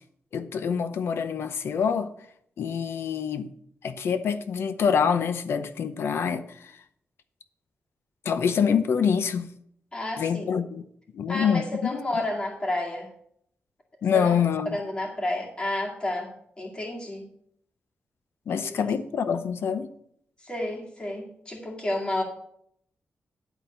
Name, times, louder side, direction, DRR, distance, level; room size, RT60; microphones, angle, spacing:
voice 1, 0.3-2.1 2.6-3.5 3.8-6.7 8.2-9.5 10.2-10.8 11.1-12.2 14.0-14.8 18.5-19.9, left 7 dB, 85° left, 0.8 m, -26 dB
voice 2, 9.9-10.5 11.3-13.1 14.1-14.4 14.7-16.3 16.6-17.3 18.5-18.9 20.4-22.2, left 1 dB, 25° left, 2.1 m, -31 dB
11.0 x 4.0 x 6.7 m
wide cardioid pair, 170°, 4 cm